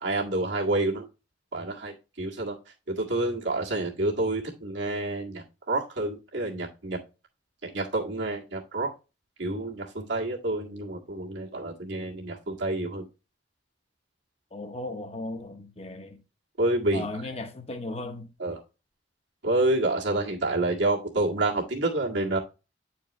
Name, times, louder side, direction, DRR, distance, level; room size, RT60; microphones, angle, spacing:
voice 1, 0.0-1.1 1.5-2.6 2.9-7.0 7.6-8.9 9.4-13.1 16.6-17.1 18.4-18.6 19.4-22.4, right 2 dB, 80° right, 1.9 m, -28 dB
voice 2, 14.5-16.2 16.9-18.3, left 2 dB, 35° left, 0.8 m, -36 dB
9.0 x 4.5 x 3.0 m
head